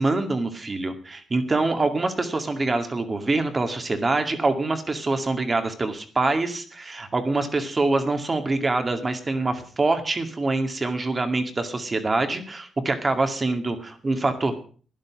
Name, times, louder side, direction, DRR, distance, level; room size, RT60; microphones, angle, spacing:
voice 1, 0.0-14.5, right 3 dB, 30° right, 7 dB, 2.3 m, -25 dB
12.0 x 11.0 x 6.1 m, 0.41 s
cardioid pair, 110°, 0 cm